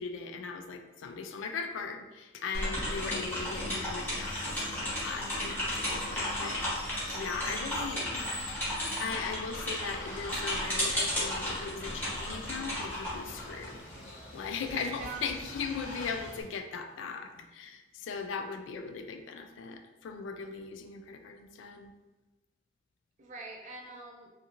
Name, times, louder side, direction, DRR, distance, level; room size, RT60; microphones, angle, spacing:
voice 1, 0.0-8.1 9.0-13.8 14.3-21.9, left 5 dB, 85° left, 7 dB, 0.3 m, -39 dB
sound 1, 2.5-14.1, left 1 dB, 10° left, 0.8 m, -34 dB
Water, 2.9-16.4, left 1 dB, 40° left, 0.8 m, -45 dB
voice 2, 3.1-3.8 14.7-15.3 23.2-24.3, right 3 dB, 40° right, 1 dB, 0.4 m, -45 dB
2.5 x 2.4 x 2.8 m, 1.1 s
head